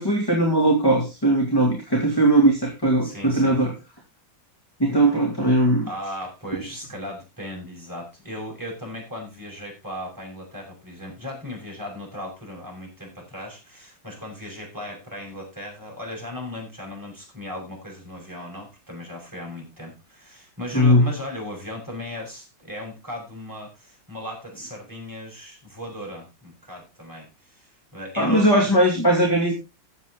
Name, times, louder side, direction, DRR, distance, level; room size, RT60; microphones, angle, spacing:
voice 1, 0.0-3.7 4.8-5.9 20.7-21.1 28.2-29.5, right 1 dB, 10° left, 0 dB, 2.4 m, -19 dB
voice 2, 3.0-3.6 5.8-28.5, left 1 dB, 10° right, -1 dB, 6.1 m, -37 dB
14.5 x 8.1 x 3.8 m, 0.25 s
omnidirectional pair, 2.0 m